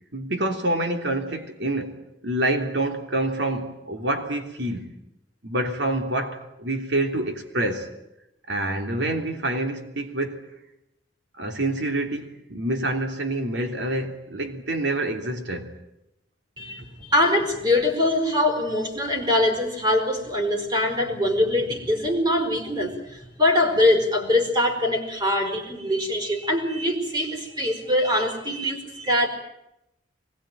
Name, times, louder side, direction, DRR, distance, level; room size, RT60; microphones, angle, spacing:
voice 1, 0.1-4.9 5.4-7.9 8.5-10.4 11.4-15.7, right 1 dB, 75° right, 3.2 m, -27 dB
voice 2, 16.6-29.3, left 1 dB, 25° right, 5.1 m, -23 dB
24.5 x 21.0 x 9.2 m
head